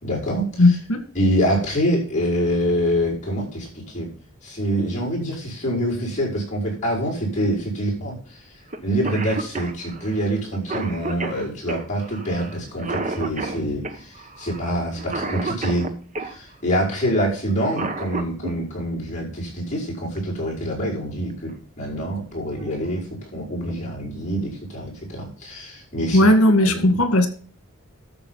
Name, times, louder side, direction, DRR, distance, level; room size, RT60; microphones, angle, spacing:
voice 1, 0.0-0.8 1.1-4.1 4.4-8.4 8.8-15.9 16.2-26.3 26.6-27.0, equal, 35° left, -4 dB, 5.4 m, -25 dB
voice 2, 0.6-1.0 26.1-27.3, left 1 dB, 80° left, 9 dB, 1.8 m, -16 dB
Cough, 8.7-8.8 9.0-16.3 17.5-18.5 20.2-20.3 21.3-21.6 22.0-22.1 22.5-23.0, right 3 dB, 35° right, 1.2 m, -31 dB
12.5 x 7.0 x 3.9 m, 0.43 s
head